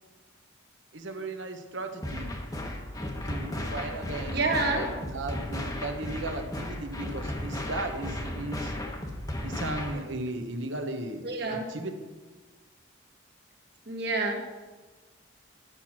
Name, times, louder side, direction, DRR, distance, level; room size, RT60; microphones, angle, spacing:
voice 1, 0.9-2.3 3.2-8.7 9.4-11.2 11.5-11.9, right 2 dB, 75° right, 6 dB, 1.1 m, -36 dB
sound 1, 2.0-10.0, left 1 dB, 20° left, 1.0 m, -35 dB
voice 2, 4.3-4.9 11.2-11.6 13.9-14.4, right 3 dB, 55° right, 1 dB, 1.7 m, -28 dB
10.5 x 6.1 x 6.0 m, 1.3 s
head